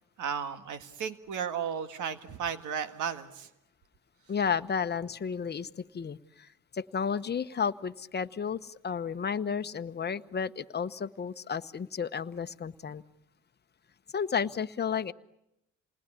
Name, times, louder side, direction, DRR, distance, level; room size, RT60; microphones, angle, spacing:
voice 1, 0.2-3.5, right 7 dB, 80° right, 10 dB, 1.9 m, -34 dB
voice 2, 4.3-6.5 6.7-13.0 14.1-15.1, left 6 dB, 35° left, 10 dB, 1.0 m, -32 dB
28.5 x 20.0 x 10.0 m, 0.86 s
cardioid pair, 90°, 30 cm